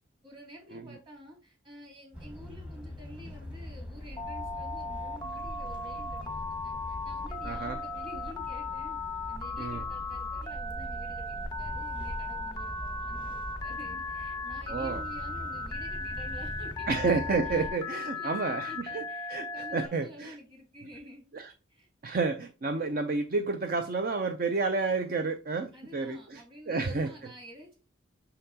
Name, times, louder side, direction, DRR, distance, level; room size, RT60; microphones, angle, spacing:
voice 1, 0.2-9.0 9.3-16.9 17.4-18.8 19.1-21.3 21.7-21.9 25.7-27.8, left 1 dB, 25° right, 3.0 m, -50 dB
sound 1, 2.1-17.7, equal, 5° right, 1.1 m, -42 dB
Telephone, 4.2-19.9, left 3 dB, 20° left, 0.4 m, -37 dB
voice 2, 7.4-7.8 9.6-9.8 14.7-15.0 16.9-20.4 21.3-21.5 22.0-27.1, right 4 dB, 45° right, 0.5 m, -30 dB
6.5 x 5.7 x 2.8 m
head